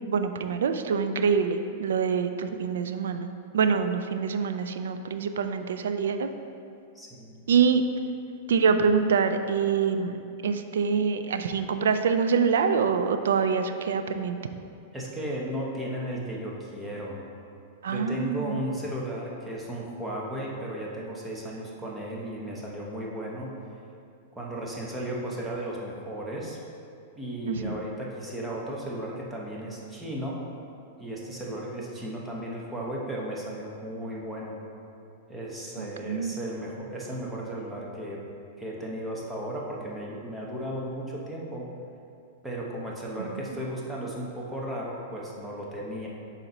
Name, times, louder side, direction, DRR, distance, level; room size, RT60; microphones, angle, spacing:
voice 1, 0.0-6.3 7.5-7.8 8.5-10.2 10.4-14.4 17.8-18.6 27.5-27.8 36.1-36.4 43.2-43.4, right 6 dB, 85° right, 8 dB, 0.3 m, -25 dB
voice 2, 6.9-7.5 14.9-17.2 17.9-23.5 24.3-26.6 27.1-30.4 31.0-34.6 35.3-38.2 38.6-41.7 42.4-46.1, right 1 dB, 5° right, -4 dB, 1.0 m, -35 dB
5.9 x 4.1 x 3.9 m, 2.5 s
hypercardioid pair, 135°, 0 cm